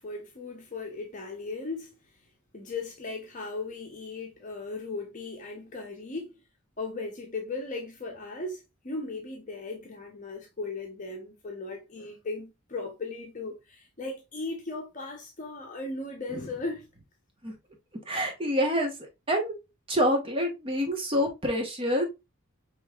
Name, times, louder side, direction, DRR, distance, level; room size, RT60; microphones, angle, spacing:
voice 1, 0.0-1.9 2.5-6.4 6.8-16.9, left 3 dB, 35° left, 0.7 m, -37 dB
voice 2, 18.1-18.9 19.3-19.6 19.9-22.1, equal, 25° right, 1.0 m, -26 dB
5.3 x 3.1 x 2.3 m
head